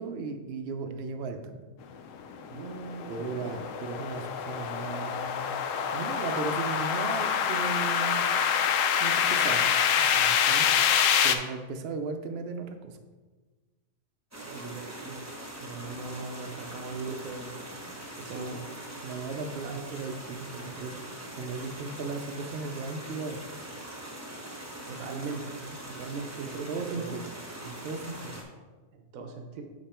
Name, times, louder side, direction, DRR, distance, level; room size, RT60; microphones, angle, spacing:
voice 1, 0.0-1.6 3.1-5.6 5.9-8.2 9.0-10.7 11.2-12.9 18.3-18.6 19.0-20.9 21.4-23.4 25.6-25.8 26.4-27.3 27.6-28.4, right 4 dB, 55° right, 6 dB, 0.8 m, -36 dB
sound 1, 2.3-11.4, left 8 dB, 70° left, 0.9 m, -26 dB
voice 2, 2.5-3.7 10.7-10.8 14.4-15.3 15.6-17.5 18.2-18.8 19.6-19.7 24.8-25.4 25.9-27.2 28.9-29.6, right 4 dB, 75° right, 3 dB, 1.2 m, -39 dB
sound 2, 14.3-28.4, right 1 dB, 10° right, 1.1 m, -42 dB
6.7 x 5.3 x 4.3 m, 1.3 s
omnidirectional pair, 1.4 m